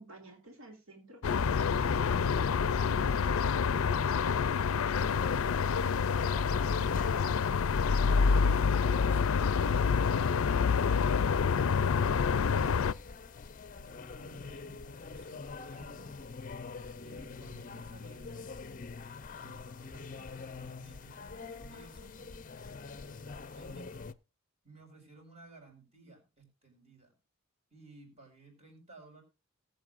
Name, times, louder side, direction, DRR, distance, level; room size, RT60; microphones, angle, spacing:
voice 1, 0.0-4.1, right 2 dB, 90° right, 3 dB, 2.5 m, -52 dB
sound 1, 1.2-12.9, left 6 dB, 85° left, 0.4 m, -27 dB
voice 2, 4.8-12.9 13.7-16.1 17.0-18.5 19.3-24.1 24.6-27.1 27.7-29.2, right 3 dB, 30° right, 2 dB, 5.1 m, -56 dB
sound 2, 4.9-24.1, left 4 dB, 40° left, 0.6 m, -45 dB
19.5 x 7.9 x 2.5 m, 0.27 s
head